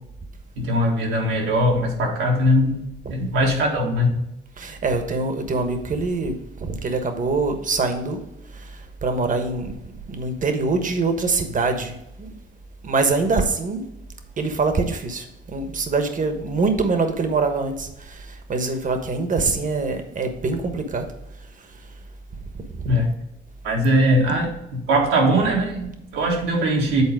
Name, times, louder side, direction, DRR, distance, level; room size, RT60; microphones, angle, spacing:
voice 1, 0.6-2.8 3.1-4.2 22.8-23.1 23.6-27.0, equal, 90° right, -1 dB, 1.9 m, -20 dB
voice 2, 4.6-6.3 6.6-8.2 8.5-9.7 10.1-12.3 12.8-13.8 14.4-21.1 21.6-21.8 22.5-23.0, right 3 dB, 40° right, 6 dB, 1.3 m, -24 dB
8.4 x 4.1 x 4.9 m, 0.88 s
cardioid pair, 90°, 20 cm